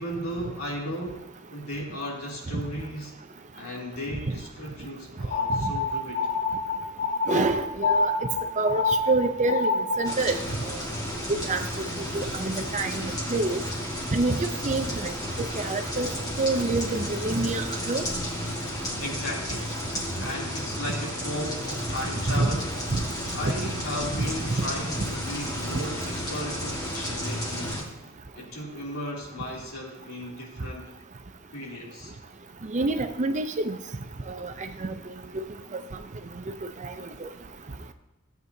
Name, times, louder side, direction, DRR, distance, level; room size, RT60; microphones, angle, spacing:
voice 1, 0.0-3.1 3.5-6.3 19.0-19.7 20.2-22.8 23.3-27.8 28.4-30.9 31.5-32.1, equal, 75° left, -3 dB, 3.0 m, -35 dB
sound 1, 5.3-10.2, left 3 dB, 35° left, 0.8 m, -27 dB
voice 2, 7.3-8.1 8.6-10.4 11.4-11.9 12.1-13.6 14.1-15.1 15.6-16.1 16.4-18.0 22.4-22.5 22.9-23.0 23.4-23.5 24.2-24.3 32.6-33.8 34.3-34.5 34.8-34.9 35.3-35.4 35.7-35.8 36.8-36.9 37.2-37.3, right 3 dB, 35° right, 8 dB, 0.6 m, -27 dB
sound 2, 10.0-27.8, equal, 15° left, 1.6 m, -32 dB
15.0 x 8.1 x 2.7 m, 0.98 s
head